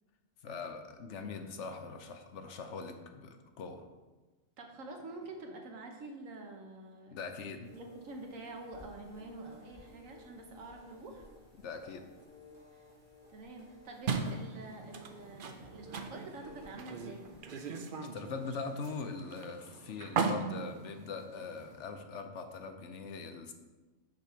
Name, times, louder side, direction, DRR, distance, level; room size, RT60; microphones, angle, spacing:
voice 1, 0.4-3.9 7.1-7.7 11.6-12.1 18.1-23.5, left 4 dB, 65° left, 6 dB, 1.0 m, -42 dB
voice 2, 4.6-7.2 7.7-11.3 12.7-12.8 13.3-17.2, right 2 dB, 85° right, 2 dB, 1.4 m, -47 dB
sound 1, 7.6-17.4, left 2 dB, 30° right, 2.4 m, -57 dB
sound 2, 14.1-21.8, right 5 dB, 55° right, 0.6 m, -39 dB
6.6 x 5.8 x 4.4 m, 1.2 s
omnidirectional pair, 1.3 m